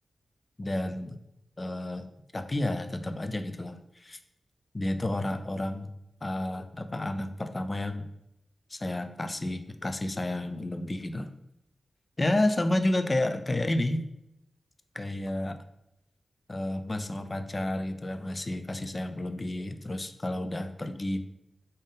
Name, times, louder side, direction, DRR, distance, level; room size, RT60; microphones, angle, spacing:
voice 1, 0.6-1.2 1.6-2.1 2.3-4.2 4.7-5.9 6.2-8.1 8.7-11.3 12.2-14.0 14.9-15.6 16.5-21.2, left 1 dB, 30° left, 8 dB, 0.3 m, -31 dB
3.6 x 2.6 x 3.6 m, 0.83 s
wide cardioid pair, 95°, 0 cm